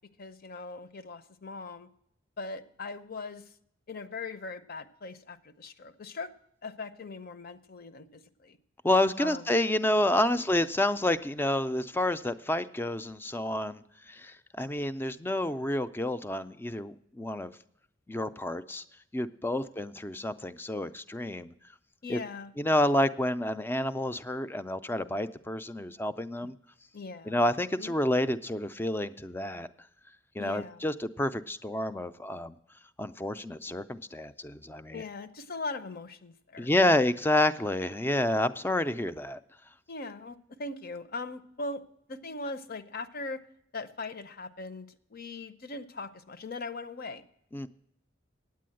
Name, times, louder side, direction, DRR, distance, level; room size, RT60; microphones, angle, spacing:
voice 1, 0.2-1.9 2.4-3.5 3.9-6.3 6.6-8.6 9.2-9.4 10.3-10.5 19.6-19.7 22.0-22.5 26.9-27.4 27.8-27.9 30.4-30.9 34.9-37.1 39.9-41.8 42.1-43.4 43.7-47.3, left 3 dB, 50° left, 12 dB, 0.7 m, -40 dB
voice 2, 8.8-17.5 18.1-18.8 19.1-21.5 22.1-22.2 22.6-26.6 27.3-29.7 30.4-32.5 33.0-35.0 36.6-39.4 47.5-47.7, left 1 dB, 10° left, 12 dB, 0.4 m, -29 dB
9.3 x 8.5 x 7.7 m, 0.73 s
head